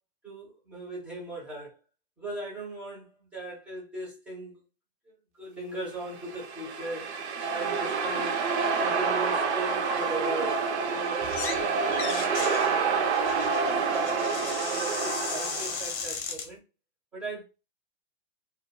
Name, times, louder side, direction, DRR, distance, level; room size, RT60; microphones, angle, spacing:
voice 1, 0.2-1.8 2.2-4.6 5.4-8.4 8.8-10.6 10.9-16.6 17.1-17.4, right 2 dB, 5° right, 0.4 m, -39 dB
sound 1, 6.1-16.0, right 5 dB, 90° right, 0.7 m, -28 dB
sound 2, 11.2-11.6 11.9-16.5, left 5 dB, 35° left, 0.6 m, -36 dB
2.3 x 2.2 x 2.8 m
supercardioid pair, 165°, 32 cm